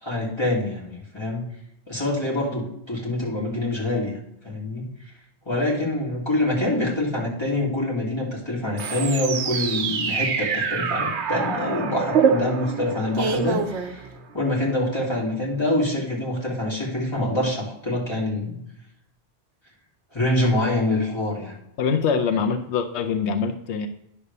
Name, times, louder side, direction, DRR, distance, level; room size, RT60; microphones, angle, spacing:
voice 1, 0.0-1.5 1.9-4.1 4.4-4.9 5.5-14.1 14.3-18.6 20.1-21.5, left 1 dB, 25° left, -5 dB, 2.6 m, -25 dB
sound 1, 8.8-14.4, right 6 dB, 80° right, 1.0 m, -25 dB
voice 2, 21.8-23.9, left 6 dB, 90° left, 5 dB, 1.0 m, -24 dB
9.6 x 3.3 x 6.6 m, 0.76 s
omnidirectional pair, 1.1 m